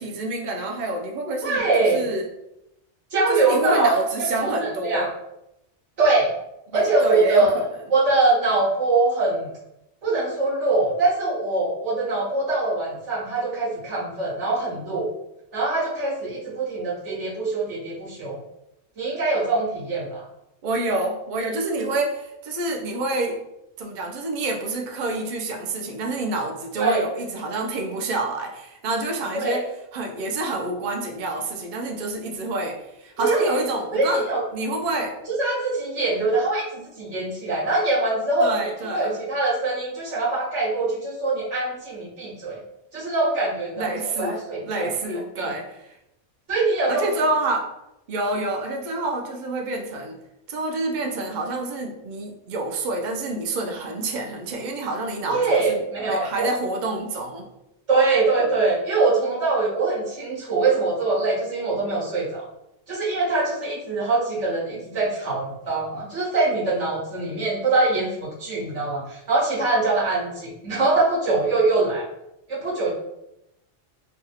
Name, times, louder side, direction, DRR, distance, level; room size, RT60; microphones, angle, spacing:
voice 1, 0.0-2.2 3.3-5.1 6.7-7.6 20.6-23.4 23.8-29.6 29.9-34.2 34.5-35.2 38.4-39.1 43.8-45.9 46.9-47.7 48.1-50.2 50.5-55.4 55.7-57.5, right 2 dB, 55° right, 2 dB, 0.6 m, -28 dB
voice 2, 1.4-2.0 3.1-3.9 4.4-5.1 6.0-6.3 6.7-9.5 10.0-15.1 15.5-18.4 19.0-20.2 26.7-27.0 29.3-29.6 33.2-33.6 33.9-34.4 35.3-42.6 42.9-44.9 45.4-45.5 46.5-47.0 55.2-56.5 57.9-62.5 62.9-72.1 72.5-72.9, right 3 dB, 75° right, -8 dB, 1.7 m, -23 dB
3.4 x 2.3 x 2.8 m, 0.86 s
omnidirectional pair, 1.2 m